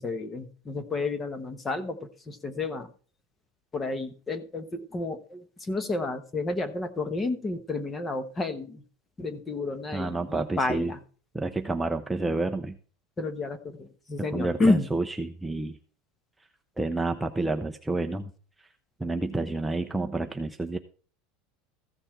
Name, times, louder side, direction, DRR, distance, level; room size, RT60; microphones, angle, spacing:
voice 1, 0.0-2.9 3.7-8.8 9.2-11.0 13.2-14.9, left 3 dB, 15° left, 11 dB, 1.1 m, -30 dB
voice 2, 9.9-10.9 11.3-12.8 14.3-15.8 16.8-18.3 19.0-20.8, right 2 dB, 5° right, 5 dB, 0.6 m, -29 dB
15.0 x 6.9 x 4.5 m, 0.41 s
supercardioid pair, 150°, 0 cm